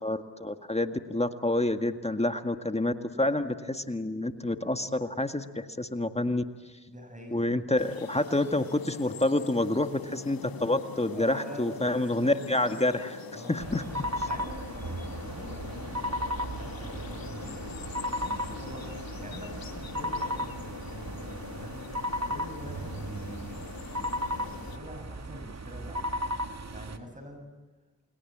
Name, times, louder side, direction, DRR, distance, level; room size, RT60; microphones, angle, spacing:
voice 1, 0.0-6.4 7.3-13.8 14.2-14.3, left 1 dB, 15° left, 8 dB, 1.8 m, -28 dB
voice 2, 6.9-7.5 11.1-13.0 13.3-13.7 14.2-16.1 16.5-26.2 26.7-27.5, equal, 20° right, 3 dB, 6.8 m, -45 dB
sound 1, 7.8-24.8, left 7 dB, 55° left, 1.8 m, -43 dB
sound 2, 13.6-27.0, equal, 40° right, 2.5 m, -35 dB
29.5 x 22.0 x 8.8 m, 1.3 s
supercardioid pair, 40°, 42 cm